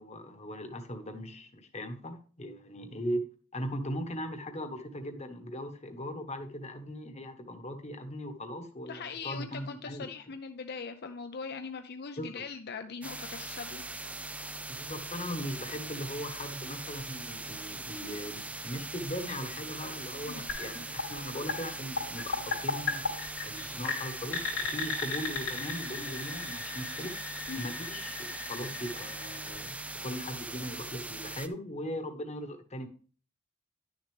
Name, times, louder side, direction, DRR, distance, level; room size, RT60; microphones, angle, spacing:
voice 1, 0.0-3.2 3.5-10.1 12.2-12.4 14.8-23.0 23.4-27.2 27.6-28.2 28.5-32.9, equal, 30° left, 7 dB, 1.1 m, -39 dB
voice 2, 8.9-13.8 20.2-20.5 27.5-27.7, left 5 dB, 50° left, 7 dB, 0.6 m, -41 dB
sound 1, 13.0-31.5, right 2 dB, 5° right, 0.3 m, -41 dB
sound 2, 20.5-30.3, left 4 dB, 85° left, 3.1 m, -37 dB
11.0 x 6.5 x 3.4 m, 0.41 s
head